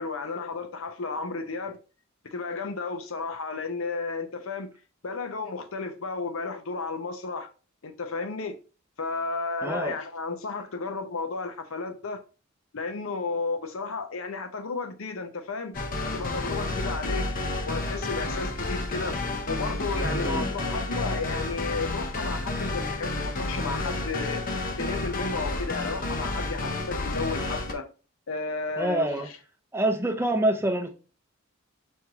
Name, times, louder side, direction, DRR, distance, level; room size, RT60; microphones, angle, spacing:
voice 1, 0.0-1.8 2.2-4.7 5.0-7.5 7.8-8.6 9.0-12.2 12.7-15.7 16.1-17.2 17.7-19.2 19.5-24.4 24.8-27.9 28.3-29.2, left 4 dB, 85° left, 0.8 m, -33 dB
voice 2, 9.6-10.0 20.0-20.5 28.8-29.3 29.7-30.9, right 1 dB, 10° right, 0.6 m, -26 dB
sound 1, 15.7-27.7, left 2 dB, 40° left, 0.6 m, -30 dB
4.5 x 3.0 x 3.5 m
head